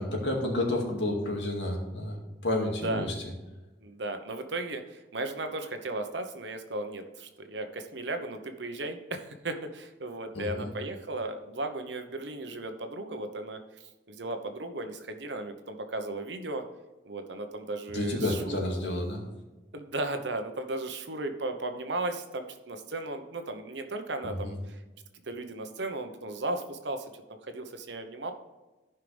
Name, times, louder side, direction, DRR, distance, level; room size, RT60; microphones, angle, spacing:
voice 1, 0.0-3.1 10.3-10.7 17.9-19.2 24.2-24.5, left 1 dB, 70° left, 0 dB, 2.3 m, -30 dB
voice 2, 2.6-3.1 3.8-16.6 17.0-18.6 19.7-24.8 25.3-27.1 27.4-28.3, right 2 dB, 70° right, 7 dB, 1.1 m, -36 dB
14.0 x 5.7 x 3.5 m, 1.1 s
head